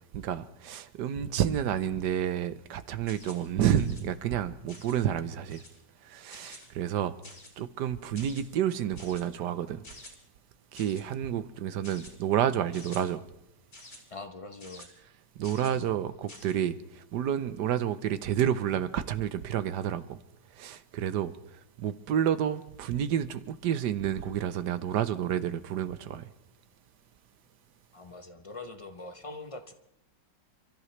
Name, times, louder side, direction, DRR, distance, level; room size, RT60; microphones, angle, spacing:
voice 1, 0.1-5.6 6.0-7.2 7.6-9.8 10.7-13.2 15.4-20.2 20.5-21.4 21.8-26.3, right 10 dB, 75° right, 1.4 m, -30 dB
sound 1, 3.1-3.5 3.7-4.0 4.7-5.0 5.5-5.8 6.3-6.7 7.2-7.6 8.1-8.4 9.0-9.2 9.8-10.1 10.7-11.0 11.8-12.1 12.7-13.0 13.7-14.0 14.6-14.9 15.4-15.8 16.3-16.5, left 1 dB, 70° left, 4.1 m, -49 dB
voice 2, 14.1-14.9 15.4-16.0 27.9-29.7, left 2 dB, 35° left, 0.5 m, -43 dB
29.0 x 14.0 x 3.2 m
omnidirectional pair, 1.9 m